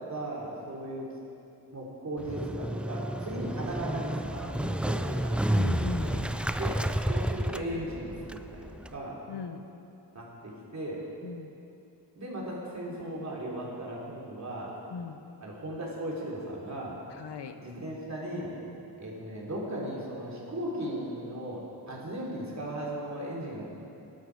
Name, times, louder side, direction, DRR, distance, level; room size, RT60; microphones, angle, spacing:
voice 1, 0.1-1.1 1.7-5.3 5.9-6.2 6.5-9.2 10.1-11.0 12.1-14.7 15.4-17.0 17.6-18.5 19.0-21.6 21.9-23.7, right 1 dB, 45° right, -4 dB, 3.3 m, -37 dB
Motorcycle, 2.2-9.0, right 1 dB, 5° right, 0.3 m, -30 dB
voice 2, 5.5-6.3 9.3-9.6 11.2-11.5 14.9-15.2 17.1-17.6, left 6 dB, 85° left, 8 dB, 0.9 m, -38 dB
18.0 x 12.0 x 4.7 m, 2.8 s
wide cardioid pair, 125°, 40 cm